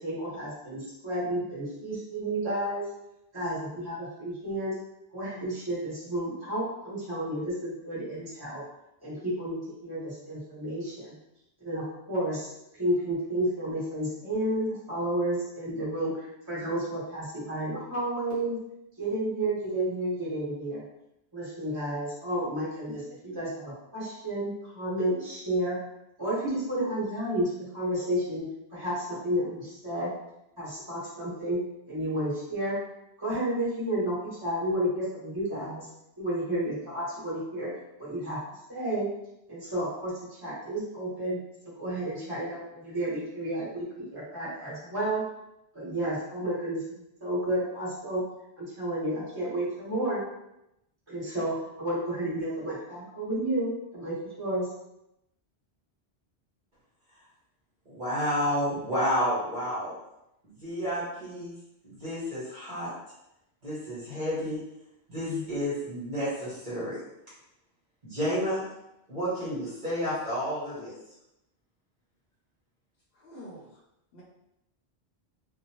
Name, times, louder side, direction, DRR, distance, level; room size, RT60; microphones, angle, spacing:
voice 1, 0.0-2.8 3.3-4.7 5.1-8.6 9.0-11.2 11.6-12.5 12.8-18.6 19.0-20.8 21.3-25.8 26.2-28.4 28.7-30.1 30.6-31.6 31.9-32.7 33.2-35.9 36.2-37.7 38.0-38.4 38.7-39.1 39.5-40.1 40.4-41.4 41.8-45.2 45.7-48.2 48.6-50.2 51.1-54.7, right 1 dB, 20° right, -9 dB, 1.2 m, -31 dB
voice 2, 57.9-59.9 60.4-61.5 61.8-62.9 63.6-64.6 65.1-67.0 68.0-68.6 69.1-70.9, equal, 45° right, -10 dB, 1.2 m, -30 dB
voice 3, 73.1-73.8 74.1-74.2, equal, 65° left, -4 dB, 0.8 m, -46 dB
2.6 x 2.2 x 2.9 m, 0.85 s
omnidirectional pair, 1.1 m